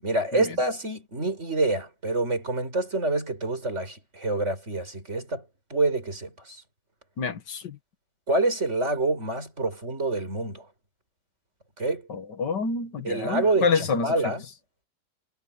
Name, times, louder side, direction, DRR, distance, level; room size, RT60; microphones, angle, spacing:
voice 1, 0.0-5.4 5.7-6.6 8.3-10.6 11.8-12.1 13.0-14.4, right 2 dB, 40° right, 6.1 m, -27 dB
voice 2, 7.2-7.8 12.1-14.3, left 4 dB, 90° left, 2.4 m, -28 dB
omnidirectional pair, 1.8 m